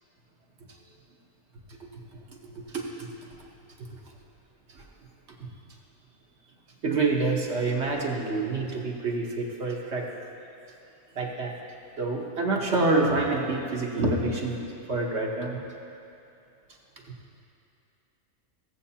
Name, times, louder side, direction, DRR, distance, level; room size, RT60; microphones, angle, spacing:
voice 1, 2.5-3.1 4.7-4.8 6.8-10.1 11.2-11.6 12.0-15.6, right 3 dB, 55° right, -1 dB, 1.1 m, -27 dB
17.0 x 7.5 x 2.8 m, 2.7 s
omnidirectional pair, 1.5 m